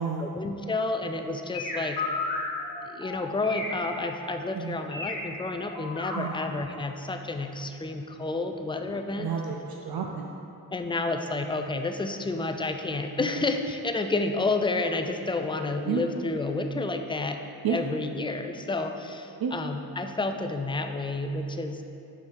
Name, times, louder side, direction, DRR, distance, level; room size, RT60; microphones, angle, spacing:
voice 1, 0.2-2.0 2.8-9.3 10.7-17.4 17.7-21.8, left 3 dB, 15° left, 6 dB, 0.3 m, -30 dB
sound 1, 1.1-5.1 5.5-6.2 6.6-6.7, left 3 dB, 70° left, 1.4 m, -34 dB
voice 2, 9.2-10.3 15.9-16.0 17.6-17.8 19.4-19.5, right 7 dB, 70° right, 1 dB, 0.5 m, -30 dB
5.4 x 5.1 x 4.6 m, 2.7 s
wide cardioid pair, 90°, 38 cm